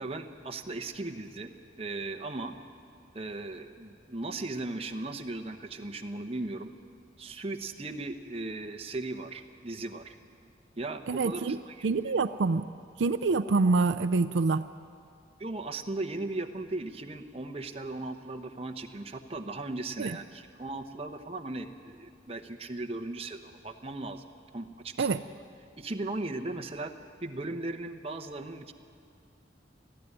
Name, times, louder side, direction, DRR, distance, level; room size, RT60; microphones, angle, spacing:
voice 1, 0.0-2.5 3.1-6.7 7.2-10.2 10.8-11.9 15.4-24.2 24.5-25.1 25.8-28.7, right 2 dB, 30° right, 5 dB, 1.0 m, -37 dB
voice 2, 11.1-11.6 11.8-12.6 13.0-14.6 20.0-20.1 25.0-25.2, right 3 dB, 80° right, 11 dB, 0.5 m, -26 dB
20.0 x 14.0 x 9.8 m, 2.3 s
head